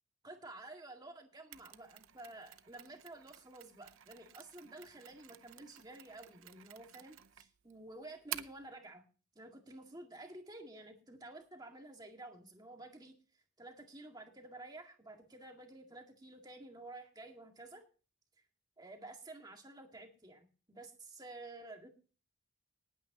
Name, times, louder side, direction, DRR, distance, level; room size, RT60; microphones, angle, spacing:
voice 1, 0.2-9.0 9.4-13.1 13.6-17.8 18.8-21.9, right 2 dB, 20° right, 3 dB, 2.0 m, -51 dB
Mechanisms, 1.5-8.7, right 12 dB, 70° right, 0.7 m, -51 dB
19.0 x 9.3 x 2.9 m, 0.36 s
head